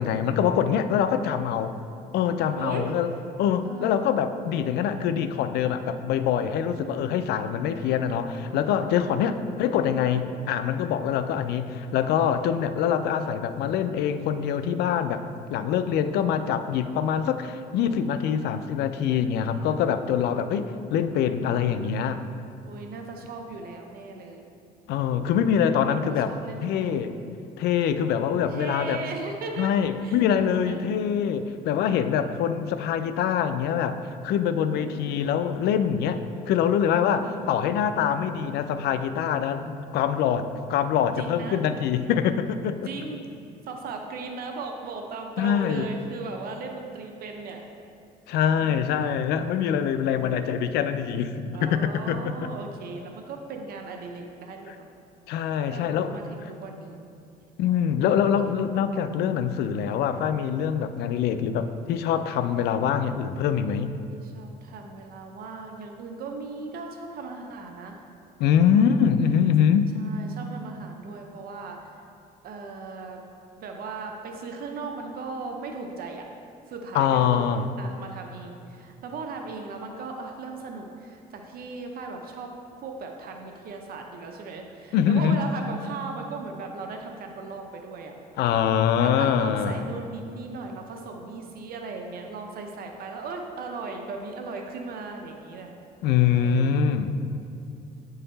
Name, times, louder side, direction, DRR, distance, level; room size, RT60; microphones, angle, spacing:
voice 1, 0.0-1.8 2.1-3.1 3.4-15.2 15.5-22.2 24.9-26.3 26.6-27.1 27.6-29.0 29.6-34.0 34.2-36.2 36.5-42.8 45.4-45.9 48.3-52.4 55.3-56.2 57.6-63.9 68.4-69.9 76.9-77.7 84.9-85.4 88.4-89.8 96.0-97.1, left 8 dB, 75° left, 11 dB, 0.4 m, -24 dB
voice 2, 2.6-2.9 3.6-4.1 6.7-7.2 9.0-9.7 17.7-18.7 22.6-24.5 25.8-27.1 28.5-29.7 30.0-30.2 30.6-31.1 34.4-35.2 37.1-37.6 41.2-41.6 42.8-43.2 43.7-47.6 48.6-49.0 49.9-50.4 51.5-54.9 55.7-55.8 56.1-57.1 58.4-58.6 64.1-68.0 68.7-69.1 70.0-71.9 72.4-73.2 73.6-76.3 76.7-82.5 82.8-88.1 89.0-95.8 96.4-96.8, right 4 dB, 60° right, 3 dB, 0.6 m, -38 dB
8.4 x 3.9 x 4.0 m, 2.6 s
cardioid pair, 110°, 17 cm